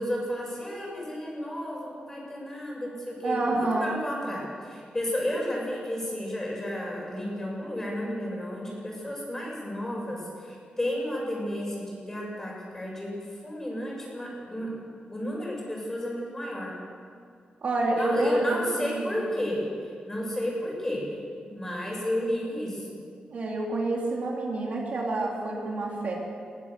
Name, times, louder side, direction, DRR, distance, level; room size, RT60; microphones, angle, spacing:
voice 1, 0.0-14.8 15.1-16.8 18.0-19.7 20.1-21.1 21.4-22.9, equal, 15° left, -3 dB, 6.7 m, -32 dB
voice 2, 3.2-4.0 17.6-19.3 23.3-26.1, right 2 dB, 55° right, -2 dB, 3.3 m, -28 dB
21.5 x 17.5 x 6.9 m, 2.3 s
wide cardioid pair, 145°, 3 cm